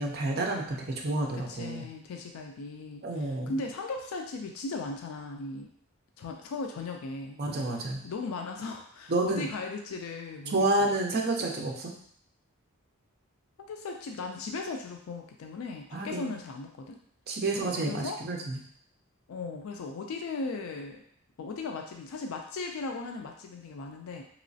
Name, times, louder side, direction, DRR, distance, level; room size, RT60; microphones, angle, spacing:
voice 1, 0.0-1.8 3.0-3.6 7.4-8.0 9.1-9.5 10.5-11.9 15.9-16.3 17.3-18.6, right 2 dB, 45° right, 0 dB, 0.5 m, -29 dB
voice 2, 1.3-5.7 6.2-7.4 8.0-10.6 13.6-17.0 17.6-18.2 19.3-21.0 21.4-24.2, left 3 dB, 70° left, 3 dB, 0.4 m, -37 dB
3.0 x 3.0 x 2.7 m, 0.64 s
head